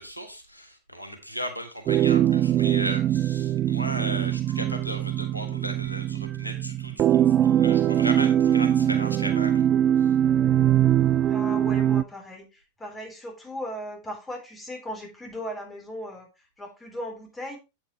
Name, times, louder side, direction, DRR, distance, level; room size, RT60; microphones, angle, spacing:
voice 1, 0.0-9.6, equal, 90° left, 6 dB, 1.4 m, -36 dB
sound 1, 1.9-12.0, right 11 dB, 30° right, 0.3 m, -22 dB
voice 2, 11.2-16.3 16.6-17.6, equal, 15° left, 1 dB, 3.6 m, -37 dB
8.5 x 8.3 x 3.2 m, 0.26 s
figure-of-eight pair, 90°, 0 cm